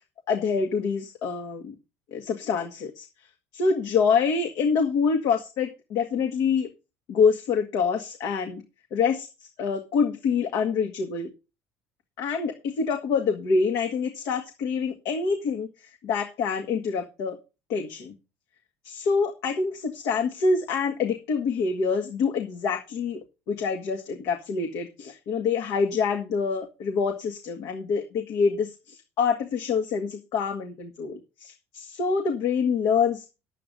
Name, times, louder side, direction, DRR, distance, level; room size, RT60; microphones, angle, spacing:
voice 1, 0.3-1.7 2.1-3.1 3.5-6.7 7.1-8.6 8.9-11.3 12.2-17.4 17.7-18.1 18.8-23.2 23.5-33.3, left 5 dB, 70° left, 4 dB, 1.8 m, -26 dB
10.0 x 8.4 x 5.3 m, 0.30 s
supercardioid pair, 95°, 6 cm